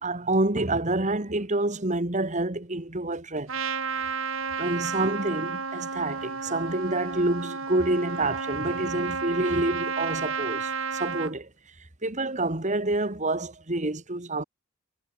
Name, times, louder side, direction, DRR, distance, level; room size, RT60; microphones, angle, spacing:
voice 1, 0.0-3.5 4.0-4.1 4.6-11.5 12.0-14.4, right 2 dB, 35° right, 2.1 m, -28 dB
Trumpet, 3.5-11.3, right 5 dB, 65° right, 2.3 m, -32 dB
head